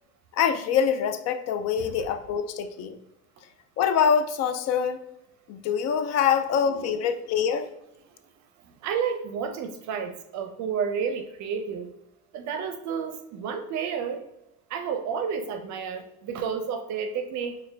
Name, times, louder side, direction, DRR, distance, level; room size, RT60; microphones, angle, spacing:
voice 1, 0.3-3.0 3.8-5.0 5.5-7.7, left 7 dB, 50° left, 10 dB, 0.5 m, -25 dB
voice 2, 6.6-7.0 8.1-8.2 8.8-11.9 12.3-14.2 14.7-17.6, right 6 dB, 55° right, 7 dB, 0.5 m, -31 dB
4.8 x 2.3 x 3.3 m, 0.83 s
supercardioid pair, 105°, 36 cm